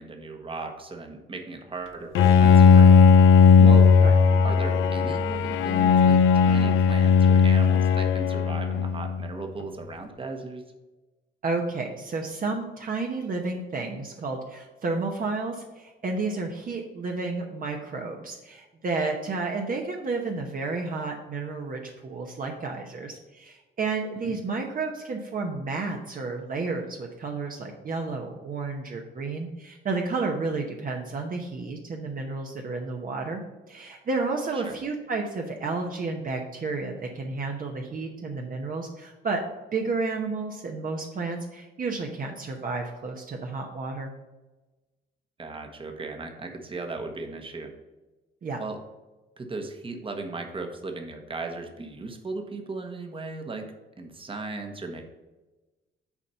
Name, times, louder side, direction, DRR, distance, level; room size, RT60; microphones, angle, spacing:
voice 1, 0.0-3.0 3.6-3.9 4.4-10.6 24.2-24.4 34.5-34.8 45.4-47.7 48.6-48.8 49.4-53.7 54.0-55.0, right 3 dB, 25° right, 4 dB, 1.2 m, -36 dB
Bowed string instrument, 2.1-9.3, left 6 dB, 90° left, 0.5 m, -17 dB
voice 2, 11.4-33.4 33.7-39.4 39.7-44.1 48.4-48.6, right 3 dB, 45° right, 1 dB, 1.0 m, -31 dB
7.1 x 4.2 x 5.6 m, 1.1 s
cardioid pair, 90°, 20 cm